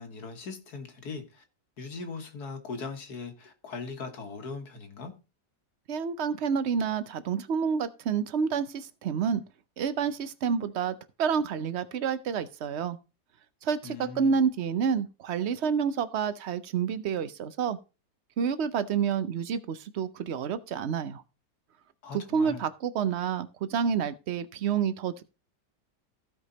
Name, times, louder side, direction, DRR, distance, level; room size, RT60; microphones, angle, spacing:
voice 1, 0.0-1.4 1.8-5.1 13.8-14.4 22.0-22.6, left 4 dB, 60° left, 2.0 m, -39 dB
voice 2, 5.9-9.4 9.8-13.0 13.6-17.8 18.4-21.2 22.1-25.2, right 6 dB, 55° right, 0.7 m, -29 dB
15.0 x 5.1 x 4.0 m
omnidirectional pair, 1.9 m